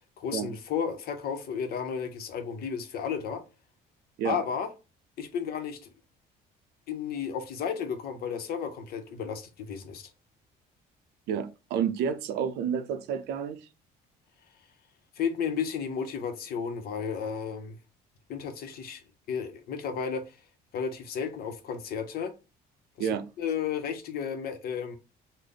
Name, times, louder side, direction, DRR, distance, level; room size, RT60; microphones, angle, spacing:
voice 1, 0.2-3.4 4.2-4.7 5.2-5.9 6.9-10.1 15.2-17.8 18.3-19.0 19.3-20.4 20.7-22.3 23.0-23.1 23.4-25.0, left 7 dB, 65° left, 0.8 m, -33 dB
voice 2, 11.3-13.7 23.0-23.2, right 8 dB, 80° right, 0.5 m, -30 dB
3.3 x 2.0 x 3.8 m
cardioid pair, 110°, 17 cm